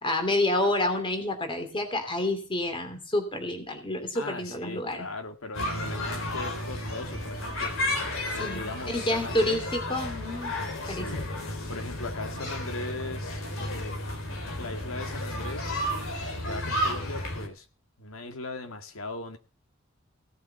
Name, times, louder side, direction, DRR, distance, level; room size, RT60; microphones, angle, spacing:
voice 1, 0.0-5.1 8.3-10.5 10.9-11.3, left 1 dB, 25° left, 7 dB, 2.8 m, -29 dB
voice 2, 4.1-7.7 8.3-9.6 10.8-11.2 11.7-14.2 14.6-15.7 16.4-17.7 18.0-19.4, left 2 dB, 85° left, 7 dB, 2.0 m, -39 dB
sound 1, 5.5-17.5, left 1 dB, 70° left, 3.4 m, -32 dB
17.0 x 7.4 x 5.8 m, 0.38 s
head